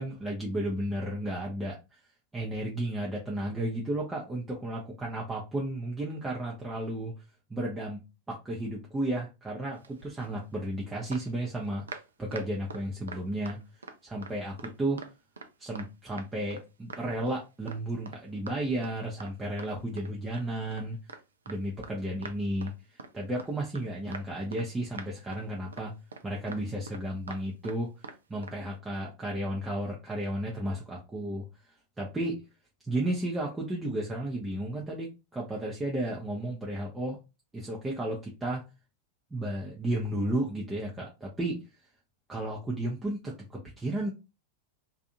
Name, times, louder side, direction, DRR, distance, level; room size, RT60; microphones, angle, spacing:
voice 1, 0.0-2.0 2.3-7.1 7.5-8.0 8.3-11.8 12.2-13.6 14.0-15.1 15.6-21.0 21.5-25.9 26.2-27.9 28.3-32.4 32.9-37.2 37.5-38.6 39.3-41.6 42.3-44.1, right 1 dB, 10° right, -3 dB, 0.7 m, -33 dB
sound 1, 9.8-10.4 11.1-14.0 14.2-15.5 15.7-16.6 16.9-17.4 17.7-17.8 18.1-18.2 18.5-18.6 18.8-19.7 20.0-21.9 22.2-22.7 23.0-23.1 23.4-23.9 24.1-24.7 24.9-25.4 25.7-25.9 26.1-27.8 28.0-28.2 28.4-28.6, right 4 dB, 70° right, 0.4 m, -44 dB
2.6 x 2.5 x 2.5 m, 0.27 s
figure-of-eight pair, 90°, 0 cm